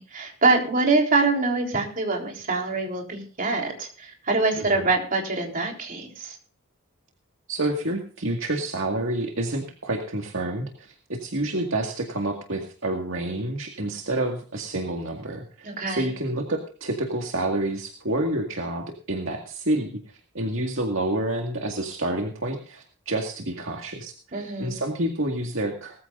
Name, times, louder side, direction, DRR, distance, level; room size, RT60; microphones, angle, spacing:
voice 1, 0.0-6.4 15.6-16.1 24.3-24.8, right 3 dB, 40° right, 1 dB, 3.8 m, -24 dB
voice 2, 7.5-26.0, right 1 dB, 65° right, 2 dB, 2.0 m, -29 dB
20.0 x 14.5 x 2.6 m, 0.39 s
head